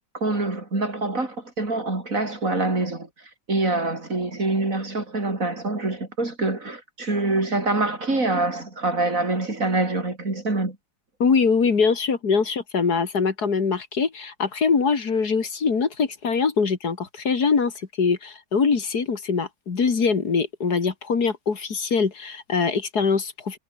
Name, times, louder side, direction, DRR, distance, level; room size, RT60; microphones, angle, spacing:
voice 1, 0.0-3.1 3.5-10.8, right 2 dB, 50° right, 4.9 m, -25 dB
voice 2, 11.2-17.7 18.0-23.6, left 5 dB, 70° left, 2.8 m, -23 dB
omnidirectional pair, 1.8 m